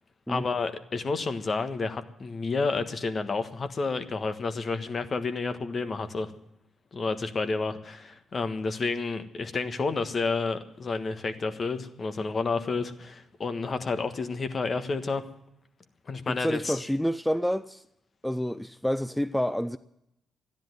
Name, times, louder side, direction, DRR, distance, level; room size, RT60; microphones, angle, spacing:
voice 1, 0.3-6.3 6.9-15.2 16.1-16.8, left 4 dB, 45° left, 1.4 m, -30 dB
voice 2, 16.3-17.8 18.2-19.8, equal, 5° left, 0.5 m, -28 dB
13.0 x 10.5 x 9.3 m
hypercardioid pair, 45°, 0 cm